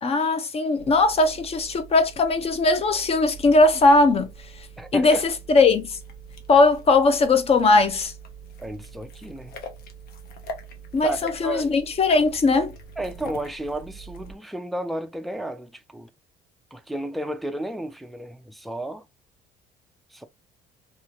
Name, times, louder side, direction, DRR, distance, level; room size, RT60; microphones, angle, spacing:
voice 1, 0.0-4.3 4.9-5.2 5.5-6.0 6.5-8.1 10.9-12.7, left 3 dB, 35° left, 0.7 m, -19 dB
sound 1, 0.8-14.3, right 3 dB, 70° left, 0.8 m, -43 dB
voice 2, 4.8-5.2 8.6-9.5 11.0-11.7 13.0-16.1 16.7-19.0 20.1-20.2, right 1 dB, ahead, 0.3 m, -32 dB
2.7 x 2.5 x 2.8 m
cardioid pair, 110°, 17 cm